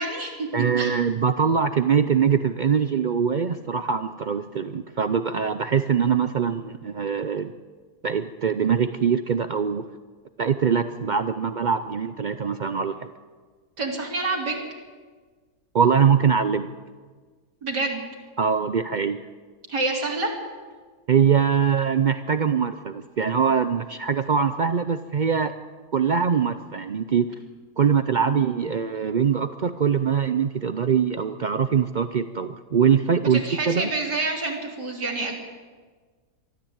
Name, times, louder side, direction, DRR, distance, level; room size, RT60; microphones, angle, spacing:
voice 1, 0.0-0.5 0.8-1.0 13.8-14.6 17.6-18.0 19.7-20.3 28.2-28.3 33.3-35.3, right 3 dB, 85° right, 0 dB, 4.1 m, -27 dB
voice 2, 0.5-7.5 8.0-9.8 10.4-13.1 15.7-16.7 18.4-19.2 21.1-25.5 25.9-27.4 27.8-33.9, right 7 dB, 70° right, 10 dB, 0.4 m, -23 dB
22.5 x 13.5 x 8.8 m, 1.5 s
omnidirectional pair, 1.7 m